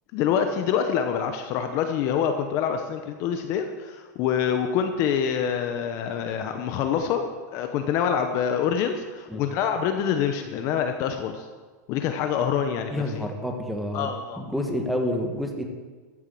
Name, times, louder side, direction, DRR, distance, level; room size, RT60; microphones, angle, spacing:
voice 1, 0.1-11.5 11.9-13.3 13.9-14.4, left 8 dB, 30° left, 6 dB, 0.8 m, -26 dB
voice 2, 12.9-14.1 14.4-15.7, left 1 dB, ahead, 2 dB, 1.2 m, -28 dB
13.5 x 7.3 x 7.6 m, 1.4 s
supercardioid pair, 170°, 10 cm